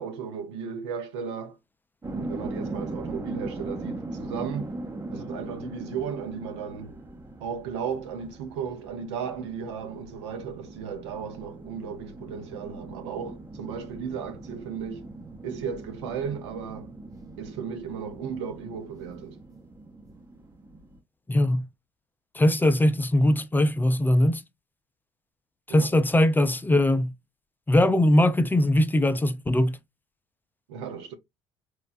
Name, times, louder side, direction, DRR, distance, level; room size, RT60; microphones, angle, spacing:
voice 1, 0.0-1.6 2.1-4.8 5.1-7.0 7.4-15.1 15.4-16.9 17.4-19.4 25.7-25.9 30.7-31.2, right 7 dB, 80° right, 0.6 m, -35 dB
sound 1, 2.0-21.0, right 2 dB, 25° right, 0.7 m, -40 dB
voice 2, 21.3-21.7 22.3-24.4 25.7-27.1 27.7-29.8, left 1 dB, 15° left, 0.4 m, -21 dB
4.2 x 2.1 x 2.5 m
hypercardioid pair, 55°, 14 cm